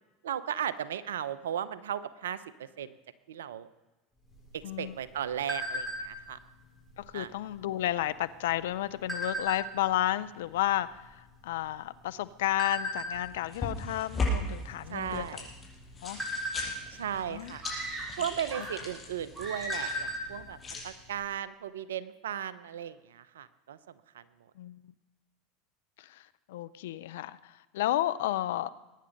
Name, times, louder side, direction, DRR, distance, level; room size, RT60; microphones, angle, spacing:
voice 1, 0.2-2.4 2.8-2.9 3.3-3.7 4.8-6.4 7.1-7.3 14.9-15.5 17.0-17.6 18.2-20.6 20.8-23.8 24.1-24.2, right 9 dB, 85° right, 15 dB, 0.7 m, -36 dB
sound 1, 4.3-6.3 6.8-7.0 7.3-7.7 8.4-9.9 10.5-10.6 10.8-12.1 12.6-13.1 13.6-13.9 14.2-14.4 14.8-15.4 15.8-17.2 18.3-18.4 18.8-18.9 19.3-20.3 20.6-20.7 21.1-21.2, equal, 10° right, 6.3 m, -35 dB
voice 2, 4.6-5.0 7.0-15.3 16.0-16.2 17.3-17.6 24.6-24.9 26.0-28.7, left 14 dB, 75° left, 16 dB, 0.6 m, -32 dB
sound 2, 13.1-20.8, left 1 dB, 30° left, 6.3 m, -38 dB
sound 3, 17.6-19.0 19.3-20.1, right 1 dB, 30° right, 6.6 m, -39 dB
22.0 x 10.0 x 5.3 m, 1.1 s
hypercardioid pair, 85°, 0 cm